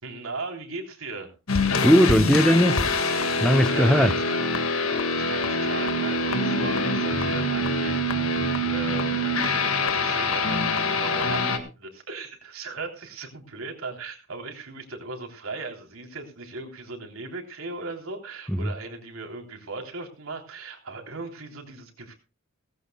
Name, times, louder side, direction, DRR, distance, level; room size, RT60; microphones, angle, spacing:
voice 1, 0.0-1.3 3.4-4.5 5.1-22.1, right 3 dB, 85° right, 3.4 m, -37 dB
sound 1, 1.5-11.6, left 2 dB, 80° left, 1.8 m, -25 dB
voice 2, 1.8-2.9 3.4-4.1 18.5-18.7, equal, 5° left, 0.7 m, -19 dB
18.0 x 16.0 x 2.3 m
head